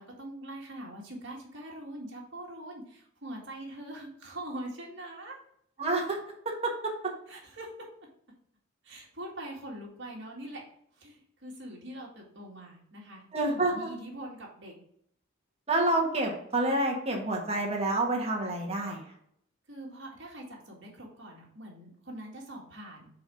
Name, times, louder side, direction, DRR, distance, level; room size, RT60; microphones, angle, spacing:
voice 1, 0.0-5.4 7.3-7.9 8.8-10.6 11.0-14.7 19.7-23.1, right 1 dB, 60° right, -2 dB, 1.9 m, -43 dB
voice 2, 5.8-6.2 6.4-7.1 13.3-13.9 15.7-19.1, right 2 dB, 30° right, 0 dB, 1.5 m, -28 dB
4.7 x 4.3 x 4.8 m, 0.70 s
head